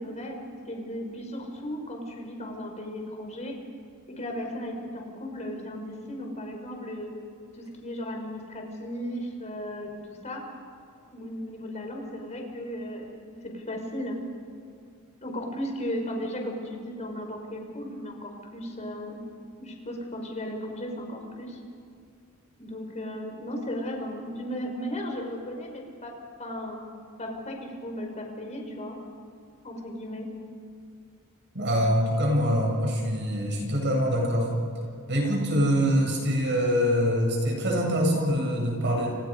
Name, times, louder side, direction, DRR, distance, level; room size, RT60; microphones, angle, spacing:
voice 1, 0.0-3.5 4.1-7.1 7.5-10.4 11.1-13.1 13.4-14.2 15.2-19.2 19.6-21.6 22.6-26.1 26.4-26.8 27.2-29.0 29.6-30.3, equal, 30° left, 2 dB, 5.2 m, -35 dB
voice 2, 31.5-34.5 35.1-39.1, equal, 55° right, 0 dB, 7.8 m, -24 dB
29.5 x 28.0 x 5.3 m, 2.4 s
head